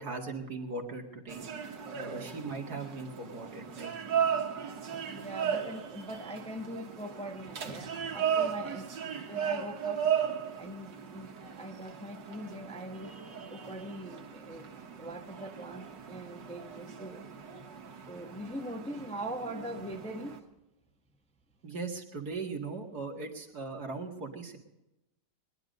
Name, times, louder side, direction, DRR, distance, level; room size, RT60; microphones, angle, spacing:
voice 1, 0.0-1.5 1.9-3.9 21.6-24.6, right 3 dB, 60° right, 2 dB, 2.6 m, -39 dB
sound 1, 1.3-20.4, right 8 dB, 85° right, 2.2 m, -36 dB
voice 2, 5.1-8.9 9.2-10.0 10.6-11.3 11.6-14.7 15.0-17.3 18.1-20.3, right 1 dB, 5° left, 3 dB, 1.0 m, -42 dB
22.0 x 11.0 x 5.3 m, 0.94 s
omnidirectional pair, 1.9 m